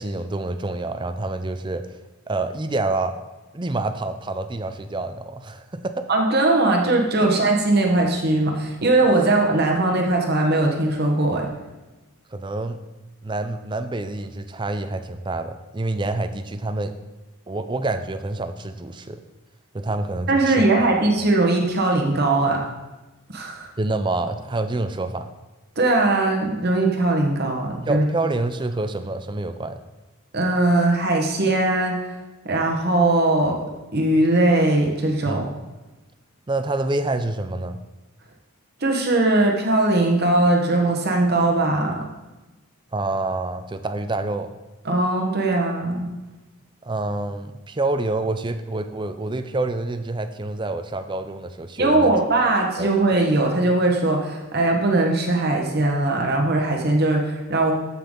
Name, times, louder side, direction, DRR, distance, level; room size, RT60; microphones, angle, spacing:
voice 1, 0.0-2.0 2.3-3.2 3.5-6.1 7.2-7.3 12.3-12.8 13.2-16.9 17.5-19.2 19.7-20.9 23.8-25.3 27.9-29.8 35.2-35.5 36.5-37.8 42.9-44.5 46.8-52.1 52.8-52.9, right 2 dB, 20° right, 9 dB, 0.4 m, -27 dB
voice 2, 6.1-11.5 20.3-22.6 23.3-23.7 25.8-28.0 30.3-32.1 32.4-33.6 33.9-35.5 38.8-41.9 44.8-46.1 51.8-57.7, right 2 dB, 45° right, 1 dB, 1.3 m, -20 dB
13.5 x 5.7 x 3.8 m, 1.1 s
head